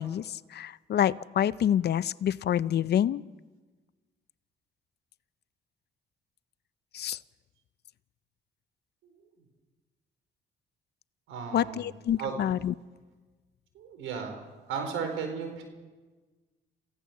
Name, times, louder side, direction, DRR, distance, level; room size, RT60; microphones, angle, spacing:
voice 1, 0.0-3.2 6.9-7.2 11.5-12.7, left 10 dB, 55° left, 18 dB, 0.6 m, -27 dB
voice 2, 11.3-11.9 12.2-12.4 13.7-15.6, right 6 dB, 90° right, 5 dB, 4.5 m, -35 dB
27.5 x 16.0 x 7.4 m, 1.3 s
cardioid pair, 90°, 20 cm